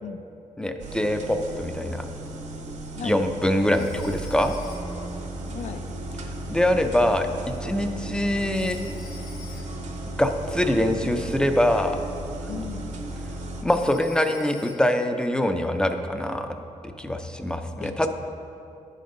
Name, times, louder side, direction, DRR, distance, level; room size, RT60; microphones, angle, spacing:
voice 1, 0.6-2.1 3.0-4.6 6.5-8.8 10.2-12.0 13.6-16.6 17.0-18.1, left 1 dB, 5° left, 6 dB, 0.4 m, -24 dB
sound 1, 0.8-13.6, right 1 dB, 70° right, 0.8 m, -35 dB
Telephone, 3.7-5.1 8.5-9.9 13.7-15.1, left 4 dB, 85° left, 1.1 m, -48 dB
voice 2, 5.4-5.8 12.5-12.9 17.8-18.1, left 7 dB, 65° left, 8 dB, 0.4 m, -36 dB
10.0 x 5.2 x 3.8 m, 2.7 s
wide cardioid pair, 140°, 13 cm